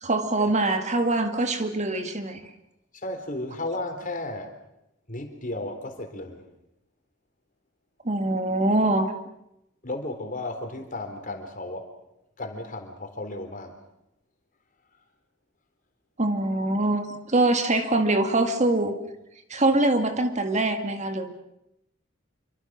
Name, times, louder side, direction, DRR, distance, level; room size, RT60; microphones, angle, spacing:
voice 1, 0.0-2.4 8.0-9.1 16.2-18.9 19.5-21.3, right 2 dB, 35° right, 7 dB, 2.0 m, -23 dB
voice 2, 2.9-4.6 5.1-6.5 9.8-11.9 12.4-13.8, left 2 dB, 45° left, 6 dB, 3.9 m, -34 dB
27.5 x 24.5 x 6.2 m, 0.84 s
head